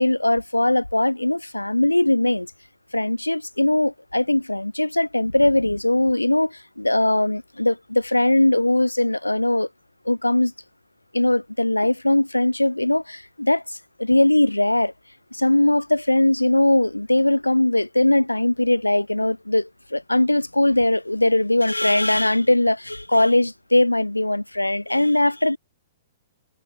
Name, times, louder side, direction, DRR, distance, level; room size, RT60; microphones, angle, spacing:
voice 1, 0.0-2.5 2.9-9.7 10.1-10.5 11.1-13.6 14.0-14.9 15.3-25.6, left 1 dB, 90° left, 0.6 m, -20 dB
figure-of-eight pair, 115°, 0 cm